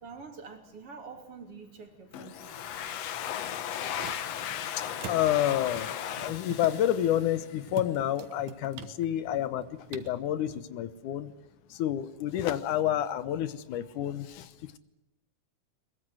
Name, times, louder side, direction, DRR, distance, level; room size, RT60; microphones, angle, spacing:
voice 1, 0.0-3.2, right 5 dB, 45° right, 4 dB, 3.7 m, -47 dB
Domestic sounds home sounds, 2.1-7.8, left 10 dB, 65° left, 2.1 m, -36 dB
sound 1, 2.8-10.6, right 10 dB, 85° right, 2.9 m, -47 dB
voice 2, 4.8-6.0 6.2-9.7 9.9-11.3 11.7-14.5, left 11 dB, 80° left, 13 dB, 2.5 m, -29 dB
22.5 x 21.5 x 7.9 m, 0.95 s
omnidirectional pair, 3.6 m